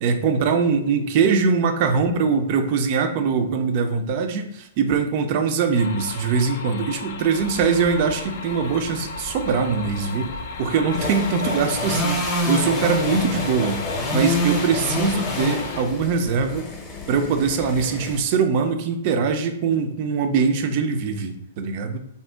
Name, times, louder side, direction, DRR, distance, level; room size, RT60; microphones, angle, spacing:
voice 1, 0.0-12.2 12.5-13.8 14.1-16.7 17.1-22.0, right 5 dB, 45° right, 7 dB, 0.4 m, -22 dB
sound 1, 5.7-15.8, left 4 dB, 60° left, 0.3 m, -34 dB
sound 2, 7.4-18.2, left 1 dB, 20° left, 0.6 m, -29 dB
2.7 x 2.1 x 3.3 m, 0.81 s
figure-of-eight pair, 110°, 0 cm